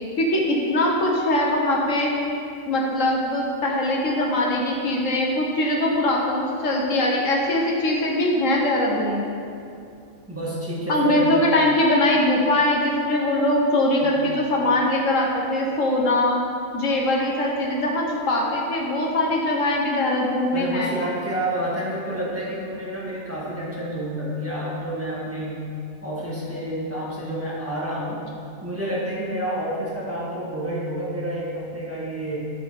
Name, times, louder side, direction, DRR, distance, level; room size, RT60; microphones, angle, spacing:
voice 1, 0.2-2.1 2.7-9.4 10.9-16.4 16.7-20.9, left 1 dB, 80° left, -2 dB, 1.5 m, -22 dB
voice 2, 10.3-11.4 14.0-14.2 20.5-25.7 26.0-28.2 28.6-32.4, right 1 dB, 10° right, -7 dB, 1.5 m, -29 dB
12.5 x 4.6 x 4.2 m, 2.5 s
omnidirectional pair, 1.3 m